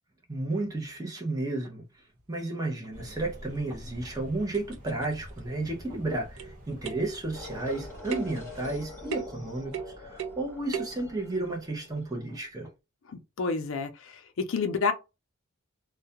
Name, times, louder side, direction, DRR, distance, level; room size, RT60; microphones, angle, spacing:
voice 1, 0.3-12.7, right 2 dB, 15° right, 0.6 m, -33 dB
sound 1, 2.9-8.0, equal, 35° right, 1.1 m, -47 dB
sound 2, 3.5-3.6 4.2-4.3 4.5-5.4 6.4-6.6 6.8-7.2 8.1-8.4 9.1-9.4 9.7-10.4 10.7-11.0, right 7 dB, 75° right, 0.4 m, -36 dB
sound 3, 7.3-12.5, left 2 dB, 15° left, 0.9 m, -46 dB
voice 2, 13.4-14.9, left 4 dB, 65° left, 0.4 m, -29 dB
2.3 x 2.1 x 2.7 m
head